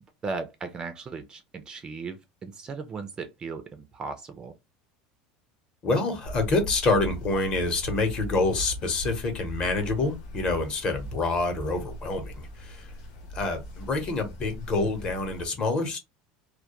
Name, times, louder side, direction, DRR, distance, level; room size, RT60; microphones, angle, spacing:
voice 1, 0.2-4.5, right 4 dB, 25° right, 0.4 m, -37 dB
voice 2, 5.8-12.9 13.3-16.0, left 3 dB, 35° left, 0.8 m, -27 dB
sound 1, 6.2-15.5, equal, 75° left, 0.9 m, -39 dB
2.2 x 2.1 x 2.9 m
supercardioid pair, 140°, 3 cm